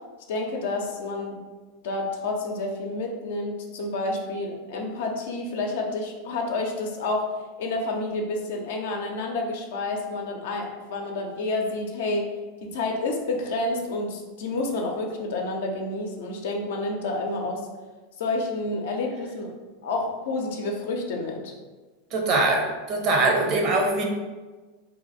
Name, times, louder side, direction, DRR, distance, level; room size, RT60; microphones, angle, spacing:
voice 1, 0.3-1.5 1.8-12.3 12.6-17.6 18.2-19.5 19.8-21.5, left 2 dB, 70° left, 1 dB, 0.6 m, -29 dB
voice 2, 22.1-24.0, right 2 dB, 45° right, 1 dB, 0.7 m, -22 dB
2.8 x 2.4 x 4.0 m, 1.3 s
hypercardioid pair, 95°, 0 cm